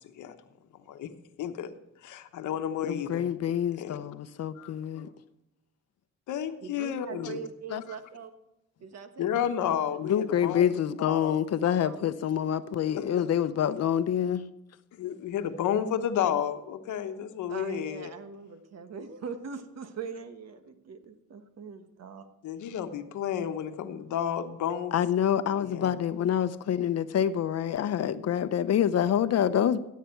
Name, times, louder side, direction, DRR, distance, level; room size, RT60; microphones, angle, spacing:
voice 1, 1.4-1.7 2.0-3.3 3.8-4.1 4.5-5.1 6.3-7.4 9.2-10.7 11.0-11.4 12.9-13.1 14.9-18.1 22.4-24.9 25.6-25.9, left 9 dB, 75° left, 8 dB, 1.1 m, -31 dB
voice 2, 2.8-5.1 7.7-7.8 10.0-14.4 24.9-29.8, left 9 dB, 55° left, 13 dB, 0.7 m, -27 dB
voice 3, 6.6-8.3 8.8-9.3 9.9-10.0 10.3-10.6 11.8-12.0 17.5-22.3, right 5 dB, 60° right, 9 dB, 1.3 m, -41 dB
16.0 x 8.5 x 4.5 m, 0.89 s
cardioid pair, 90°, 30 cm